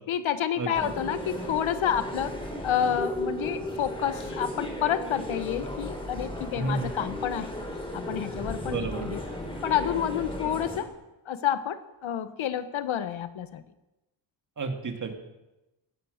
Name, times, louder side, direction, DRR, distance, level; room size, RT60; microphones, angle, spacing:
voice 1, 0.1-7.5 7.9-9.2 9.6-10.9 11.3-13.6, left 9 dB, 85° left, 12 dB, 1.2 m, -29 dB
sound 1, 0.7-10.8, left 1 dB, 10° left, 3.4 m, -35 dB
voice 2, 6.5-6.9 8.7-9.0 14.6-15.2, right 3 dB, 40° right, 5 dB, 2.1 m, -31 dB
17.5 x 12.0 x 6.5 m, 1.0 s
wide cardioid pair, 155°, 46 cm